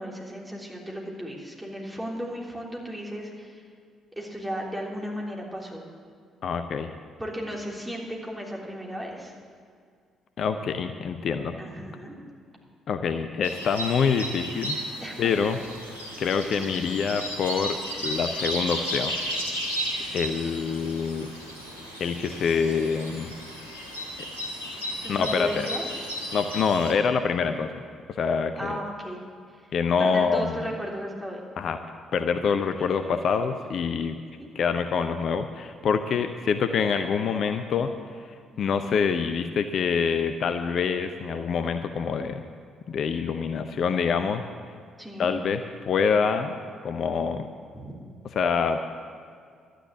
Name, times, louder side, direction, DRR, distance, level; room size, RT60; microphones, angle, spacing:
voice 1, 0.0-3.6 4.1-5.8 7.2-9.3 11.6-12.2 15.0-15.3 16.4-16.7 25.0-25.8 28.6-29.2 29.5-29.7 30.0-31.4 32.8-33.1 34.4-34.5 45.0-45.3 47.7-47.9, equal, 10° right, -3 dB, 3.3 m, -35 dB
voice 2, 6.4-6.9 10.4-11.6 12.9-14.8 15.2-15.6 16.2-19.1 20.1-21.3 22.0-23.3 25.1-25.7 26.3-27.8 28.1-28.8 29.7-30.6 31.6-31.8 32.1-34.1 34.5-37.9 38.6-42.4 42.9-44.4 45.2-46.5 46.8-47.5 48.4-48.8, left 6 dB, 50° left, 8 dB, 0.6 m, -26 dB
sound 1, 13.4-26.9, equal, 90° left, 1.5 m, -34 dB
12.0 x 10.0 x 8.0 m, 2.1 s
figure-of-eight pair, 45°, 0 cm